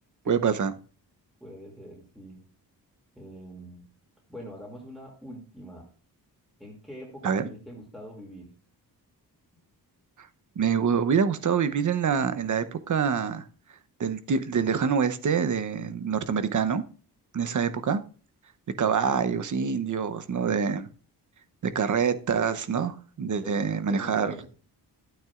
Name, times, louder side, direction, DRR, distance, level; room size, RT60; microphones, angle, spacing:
voice 1, 0.3-0.7 7.2-7.5 10.6-13.5 14.0-16.8 17.3-18.0 18.8-20.9 21.6-24.3, right 6 dB, 50° right, 0.8 m, -26 dB
voice 2, 1.4-2.4 3.1-3.8 4.3-5.9 6.6-8.5 23.4-24.5, equal, ahead, 2.5 m, -43 dB
12.0 x 8.9 x 2.4 m
wide cardioid pair, 115°, 40 cm